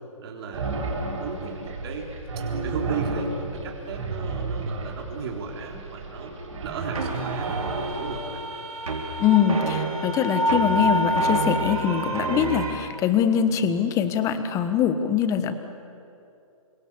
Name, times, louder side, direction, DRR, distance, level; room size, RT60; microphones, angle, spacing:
voice 1, 0.2-2.1 2.5-6.3 6.6-8.4, right 4 dB, 45° right, 0 dB, 3.8 m, -35 dB
sound 1, 0.5-8.3, right 3 dB, 60° right, 6.6 m, -32 dB
sound 2, 6.9-12.7, right 1 dB, 80° right, 5.6 m, -27 dB
voice 2, 9.2-15.5, left 8 dB, 15° left, 10 dB, 1.3 m, -23 dB
29.0 x 25.5 x 7.1 m, 2.7 s
hypercardioid pair, 145°, 18 cm